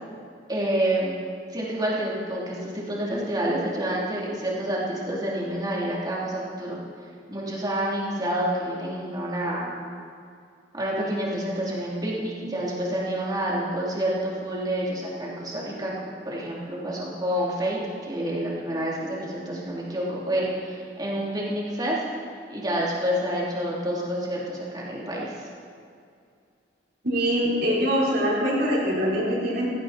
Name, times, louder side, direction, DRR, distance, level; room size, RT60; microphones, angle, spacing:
voice 1, 0.5-1.1 1.5-6.8 7.3-9.7 10.7-22.0 22.5-25.5, right 1 dB, 25° right, -6 dB, 3.5 m, -28 dB
voice 2, 27.0-29.6, equal, 60° right, -5 dB, 4.8 m, -23 dB
16.0 x 16.0 x 4.5 m, 2.3 s
head